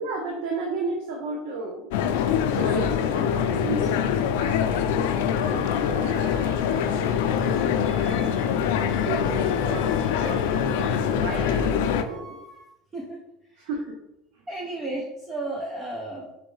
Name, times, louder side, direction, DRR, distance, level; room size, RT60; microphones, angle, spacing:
voice 1, 0.0-1.9 2.5-12.4 13.6-14.0, right 3 dB, 75° right, 1 dB, 0.7 m, -34 dB
sound 1, 1.9-12.0, left 8 dB, 85° left, 0.3 m, -24 dB
Wind instrument woodwind instrument, 5.3-11.7 12.0-12.7, left 4 dB, 5° left, 1.0 m, -45 dB
voice 2, 12.9-13.7 14.5-16.3, right 2 dB, 10° right, -2 dB, 0.5 m, -34 dB
4.2 x 3.1 x 3.1 m, 0.87 s
cardioid pair, 165°, 0 cm